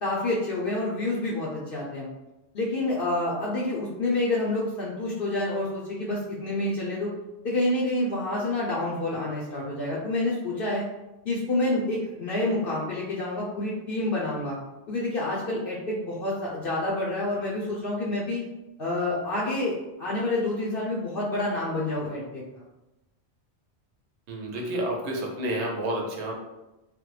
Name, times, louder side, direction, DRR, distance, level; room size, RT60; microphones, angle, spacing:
voice 1, 0.0-2.1 2.5-7.1 7.4-10.8 11.2-14.6 14.9-18.4 18.8-22.4, left 2 dB, 60° left, -5 dB, 0.7 m, -28 dB
voice 2, 24.3-26.3, right 1 dB, 80° right, 0 dB, 1.0 m, -30 dB
3.3 x 2.1 x 3.1 m, 1.0 s
omnidirectional pair, 1.1 m